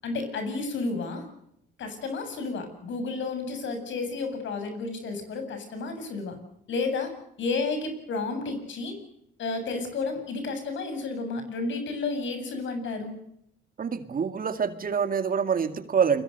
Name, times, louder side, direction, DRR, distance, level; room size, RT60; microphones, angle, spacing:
voice 1, 0.0-1.3 1.8-6.4 6.7-7.1 7.4-9.0 9.4-13.1, left 3 dB, 70° left, 7 dB, 7.9 m, -31 dB
voice 2, 13.8-16.2, right 6 dB, 45° right, 10 dB, 2.3 m, -26 dB
29.5 x 22.0 x 6.8 m, 0.76 s
cardioid pair, 90°, 20 cm